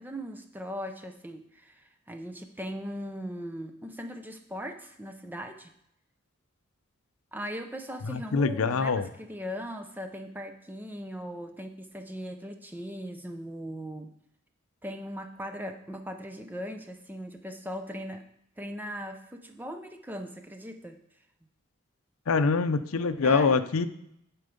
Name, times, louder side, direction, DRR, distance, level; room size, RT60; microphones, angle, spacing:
voice 1, 0.0-5.7 7.3-14.1 14.8-18.2 18.6-21.0 23.2-23.6, equal, 10° right, 6 dB, 0.5 m, -39 dB
voice 2, 8.1-9.1 22.3-23.9, left 4 dB, 85° left, 12 dB, 0.5 m, -24 dB
10.5 x 4.5 x 5.1 m, 0.77 s
head